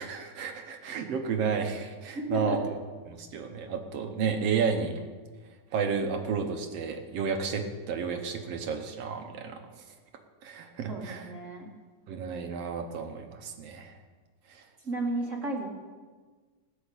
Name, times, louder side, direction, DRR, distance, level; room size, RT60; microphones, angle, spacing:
voice 1, 0.0-2.8 3.1-5.0 5.7-9.8 10.4-11.3 12.1-13.9 14.5-14.6, right 6 dB, 60° right, 5 dB, 1.8 m, -32 dB
voice 2, 2.1-2.6 10.9-11.7 14.8-15.7, right 2 dB, 30° right, 0 dB, 1.7 m, -32 dB
18.0 x 6.6 x 8.5 m, 1.5 s
omnidirectional pair, 3.6 m